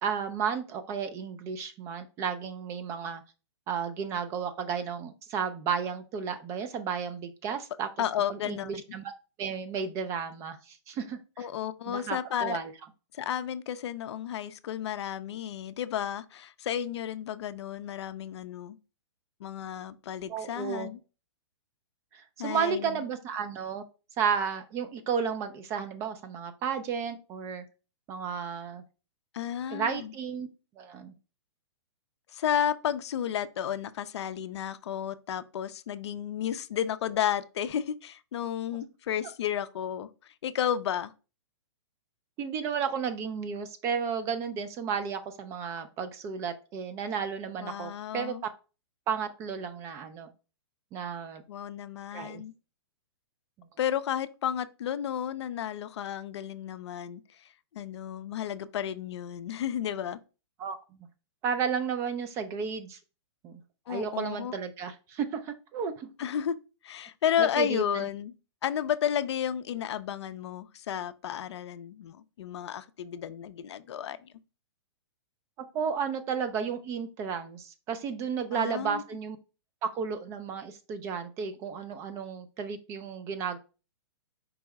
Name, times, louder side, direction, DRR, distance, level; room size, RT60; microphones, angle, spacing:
voice 1, 0.0-3.2 3.7-7.9 8.3-9.1 9.4-11.5 11.9-12.7 20.3-20.9 22.1-23.8 24.2-27.6 28.1-28.8 29.7-30.5 30.8-31.1 42.4-48.4 49.1-50.3 50.9-51.4 52.1-52.4 60.6-60.8 61.4-63.0 63.4-63.6 63.9-66.1 67.4-68.0 75.7-79.4 79.8-83.6, right 6 dB, 20° right, 0.3 m, -33 dB
voice 2, 8.0-8.8 11.4-12.6 13.1-18.8 19.4-21.0 22.4-23.0 29.3-30.1 32.3-40.1 40.4-41.1 47.6-48.4 51.5-52.5 53.8-57.2 57.7-60.2 63.9-64.5 66.2-66.6 66.8-68.3 68.6-74.3 78.5-79.0, left 10 dB, 70° left, 0.4 m, -32 dB
4.6 x 2.1 x 4.5 m
hypercardioid pair, 150°, 15 cm